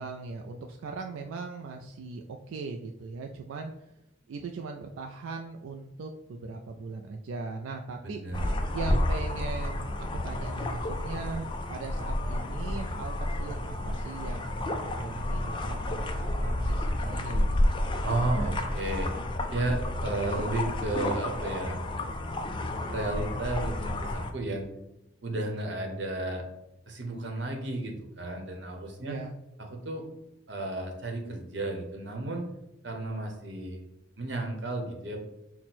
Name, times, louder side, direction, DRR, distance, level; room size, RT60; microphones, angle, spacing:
voice 1, 0.0-3.7 4.3-8.2 8.7-17.5 29.0-29.3, right 4 dB, 90° right, 3 dB, 0.4 m, -39 dB
voice 2, 8.0-8.5 18.0-19.1 19.5-21.8 22.9-24.7 25.2-26.4 26.9-29.2 29.7-30.0 30.5-32.4 32.8-33.8 34.2-35.2, right 2 dB, 60° right, 2 dB, 0.9 m, -33 dB
sound 1, 8.3-24.3, left 1 dB, 25° left, 0.3 m, -30 dB
5.9 x 2.1 x 4.3 m, 0.88 s
head